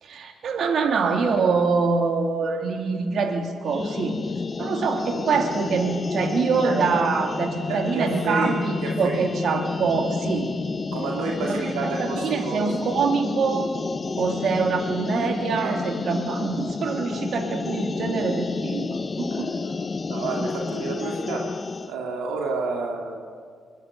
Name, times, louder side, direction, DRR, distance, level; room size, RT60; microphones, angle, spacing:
voice 1, 0.0-4.1 4.6-10.5 11.4-13.7 14.2-19.5, right 5 dB, 65° right, 4 dB, 2.8 m, -25 dB
sound 1, 3.7-21.9, left 4 dB, 40° left, 0.8 m, -30 dB
voice 2, 7.7-9.3 10.9-12.7 15.5-15.8 19.3-19.7 20.1-21.6 21.9-23.2, right 4 dB, 85° right, 0 dB, 2.3 m, -30 dB
22.5 x 13.5 x 9.7 m, 2.1 s
supercardioid pair, 55°, 0 cm